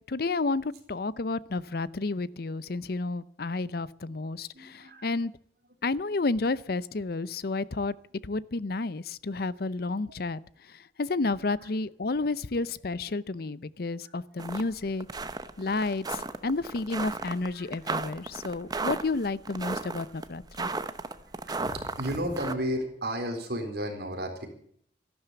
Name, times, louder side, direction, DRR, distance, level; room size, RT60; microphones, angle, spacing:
voice 1, 0.1-5.3 5.8-7.9 8.2-10.4 11.0-15.1 15.6-20.7, left 3 dB, 60° left, 18 dB, 0.6 m, -31 dB
voice 2, 4.5-5.1 11.6-11.7 14.0-14.1 17.5-17.7 21.3-24.5, equal, 60° right, 4 dB, 4.0 m, -33 dB
sound 1, 14.4-14.6 15.0-22.5, right 3 dB, 20° right, 0.8 m, -34 dB
14.0 x 12.0 x 8.2 m, 0.64 s
head